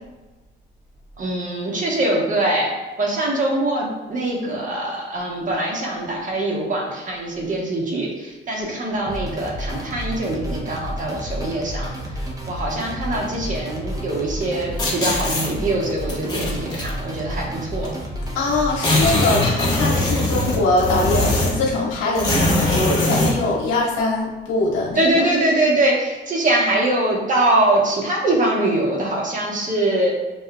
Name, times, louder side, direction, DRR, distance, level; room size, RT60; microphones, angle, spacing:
voice 1, 1.2-2.7 3.0-11.9 12.5-17.9 25.0-30.1, right 1 dB, 40° right, -3 dB, 1.2 m, -22 dB
sound 1, 9.0-19.3, equal, 15° right, 0.9 m, -31 dB
sound 2, 14.8-15.5 16.1-16.9 17.8-17.9 18.2-18.3 18.5-21.7 22.1-23.4, left 1 dB, 20° left, 1.1 m, -21 dB
voice 2, 18.3-25.2, left 2 dB, 85° left, -4 dB, 1.3 m, -22 dB
6.5 x 2.4 x 2.3 m, 1.2 s
cardioid pair, 90°, 20 cm